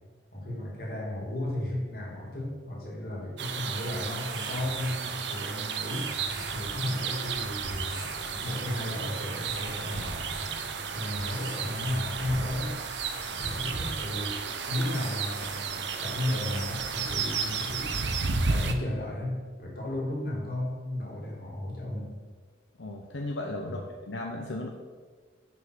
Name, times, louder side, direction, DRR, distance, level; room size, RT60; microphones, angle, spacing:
voice 1, 0.3-6.2 6.5-8.1 8.4-10.3 10.9-12.9 13.2-22.2 23.7-23.8, left 1 dB, 50° left, -3 dB, 2.5 m, -34 dB
sound 1, 3.4-18.7, right 5 dB, 75° right, 0.7 m, -33 dB
sound 2, 3.6-17.5, right 1 dB, 20° right, 1.6 m, -45 dB
voice 2, 22.8-24.7, left 2 dB, 80° left, 1 dB, 0.7 m, -35 dB
7.0 x 5.1 x 6.4 m, 1.5 s
head